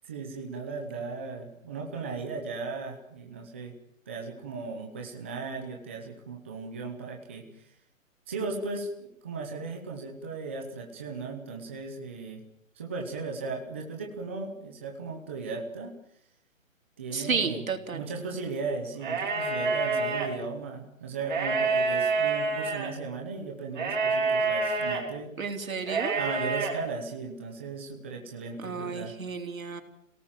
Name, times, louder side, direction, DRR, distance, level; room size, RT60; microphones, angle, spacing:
voice 1, 0.0-3.7 4.1-7.7 8.3-12.4 12.8-15.9 17.0-17.6 17.9-25.3 26.1-29.1, right 4 dB, 10° right, 1 dB, 0.9 m, -36 dB
voice 2, 17.1-18.0 25.4-26.1 28.6-29.8, right 5 dB, 85° right, 6 dB, 4.0 m, -32 dB
sound 1, 19.0-20.3 21.2-22.9 23.8-25.0 25.8-26.7, right 4 dB, 35° right, 4.6 m, -27 dB
27.5 x 18.0 x 7.4 m, 0.75 s
hypercardioid pair, 175°, 40 cm